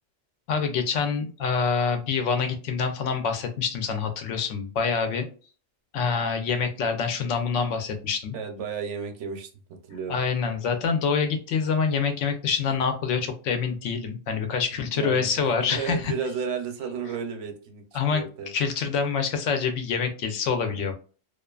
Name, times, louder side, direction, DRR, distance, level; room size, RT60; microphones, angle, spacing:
voice 1, 0.5-5.3 5.9-8.4 10.1-16.1 17.9-20.9, left 5 dB, 90° left, 7 dB, 0.9 m, -26 dB
voice 2, 8.3-10.2 14.9-15.3 15.6-18.5, right 6 dB, 75° right, 5 dB, 0.9 m, -33 dB
2.4 x 2.4 x 2.3 m, 0.38 s
omnidirectional pair, 1.2 m